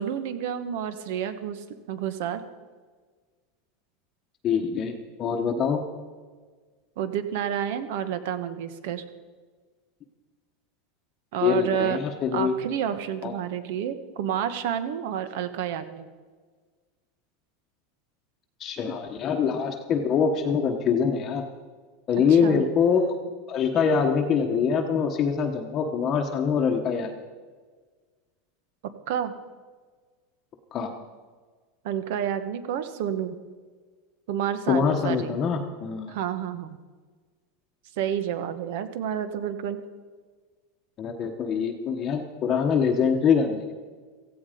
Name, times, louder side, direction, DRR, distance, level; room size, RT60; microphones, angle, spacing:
voice 1, 0.0-2.4 7.0-9.0 11.3-12.0 12.3-16.1 22.3-22.7 29.1-29.3 31.8-33.4 34.3-35.4 36.1-36.8 38.0-39.8, right 9 dB, 60° right, 11 dB, 1.3 m, -29 dB
voice 2, 4.4-4.9 5.2-5.8 11.4-12.5 13.2-13.3 18.6-21.4 22.1-23.2 23.5-27.1 30.7-30.9 34.7-36.1 41.0-43.7, left 6 dB, 25° left, 2 dB, 1.1 m, -24 dB
16.5 x 15.5 x 5.2 m, 1.5 s
supercardioid pair, 165°, 0 cm